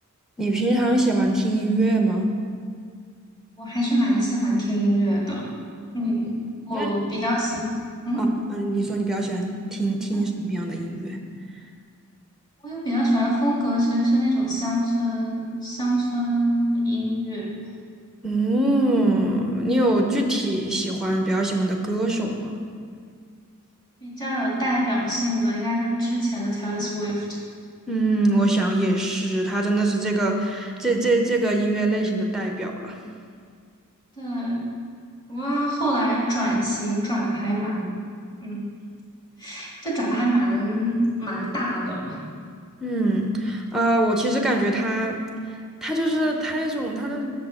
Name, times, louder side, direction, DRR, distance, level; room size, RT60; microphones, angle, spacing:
voice 1, 0.4-2.3 6.0-6.1 6.6-7.2 8.2-8.3 8.5-11.2 18.2-22.6 27.9-33.0 42.8-45.3 45.8-47.4, right 1 dB, ahead, 2 dB, 0.6 m, -23 dB
voice 2, 3.6-5.5 5.9-6.3 6.7-7.7 8.0-8.2 12.6-17.5 24.0-27.2 34.2-34.7 35.3-37.9 38.4-38.6 39.4-42.2, equal, 20° left, -5 dB, 1.8 m, -24 dB
6.5 x 5.9 x 4.9 m, 2.1 s
head